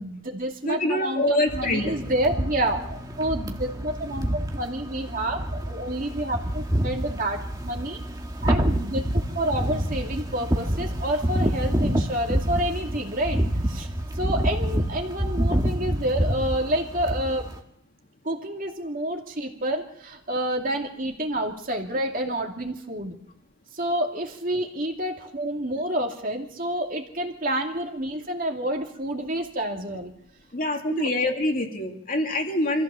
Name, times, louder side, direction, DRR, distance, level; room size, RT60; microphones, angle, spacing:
voice 1, 0.0-7.4 7.6-8.0 8.4-13.4 13.7-13.9 14.2-17.5 18.2-23.2 23.7-30.1 30.9-31.1, right 1 dB, 40° right, 2 dB, 2.5 m, -29 dB
voice 2, 0.6-1.9 30.5-32.8, left 1 dB, 40° left, 2 dB, 2.4 m, -25 dB
sound 1, 1.5-17.6, equal, 20° right, 1.6 m, -27 dB
25.5 x 15.0 x 7.0 m, 0.74 s
head